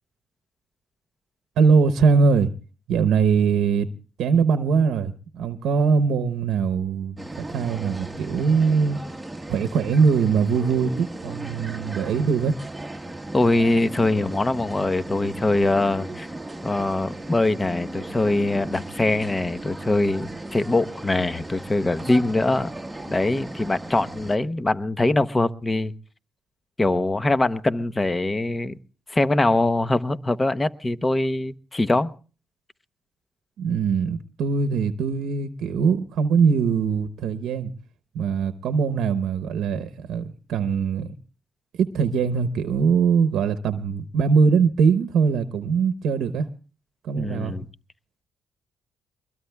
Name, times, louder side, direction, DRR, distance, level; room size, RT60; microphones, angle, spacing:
voice 1, 1.6-2.5 2.9-3.9 4.2-9.0 9.5-12.6 33.6-37.7 38.1-41.1 41.8-46.5 47.0-47.5, right 5 dB, 75° right, 10 dB, 0.9 m, -21 dB
sound 1, 7.2-24.4, right 1 dB, 10° right, 1.1 m, -36 dB
voice 2, 13.3-16.3 16.6-22.7 23.1-25.9 26.8-28.8 29.1-32.1 47.1-47.7, left 2 dB, 20° left, 12 dB, 0.9 m, -23 dB
22.5 x 21.5 x 2.3 m, 0.36 s
cardioid pair, 90°, 0 cm